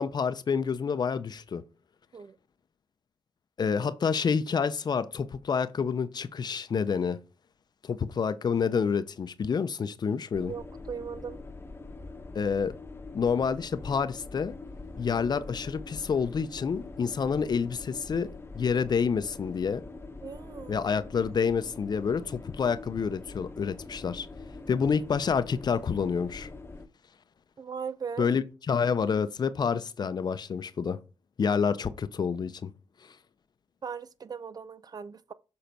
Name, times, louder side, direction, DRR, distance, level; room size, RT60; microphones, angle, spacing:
voice 1, 0.0-1.6 3.6-7.2 7.8-10.5 12.3-12.8 13.1-14.6 15.0-19.8 20.7-24.3 24.7-26.5 28.2-31.0 31.4-32.7, left 6 dB, 50° left, 0.7 m, -28 dB
sound 1, 10.3-26.9, left 3 dB, 25° left, 1.0 m, -44 dB
voice 2, 10.3-11.4 20.2-20.9 27.6-28.3 33.8-35.3, right 6 dB, 50° right, 0.6 m, -39 dB
7.0 x 3.8 x 4.5 m
supercardioid pair, 50°, 9 cm